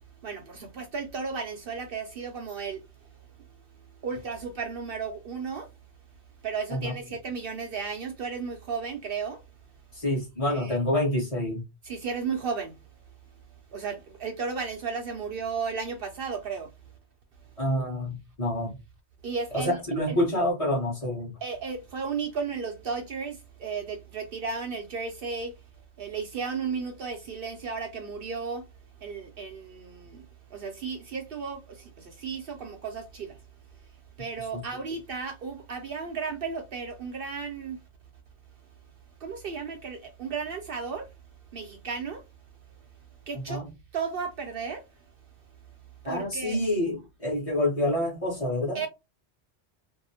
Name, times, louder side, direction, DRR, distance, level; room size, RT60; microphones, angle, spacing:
voice 1, 0.2-2.8 4.0-5.7 6.4-9.4 10.5-10.8 11.8-12.8 13.7-16.7 19.2-19.7 20.1-20.2 21.4-25.5 26.0-28.6 29.0-30.2 30.5-33.4 34.2-37.8 39.2-41.1 41.5-42.2 43.3-43.6 43.9-44.8 46.0-46.6 48.7-48.9, right 5 dB, 60° right, 0.7 m, -34 dB
voice 2, 9.9-11.6 17.6-18.7 19.5-21.3 34.5-34.6 43.5-43.7 46.0-48.8, left 1 dB, 35° left, 1.1 m, -27 dB
2.7 x 2.0 x 2.7 m
omnidirectional pair, 1.2 m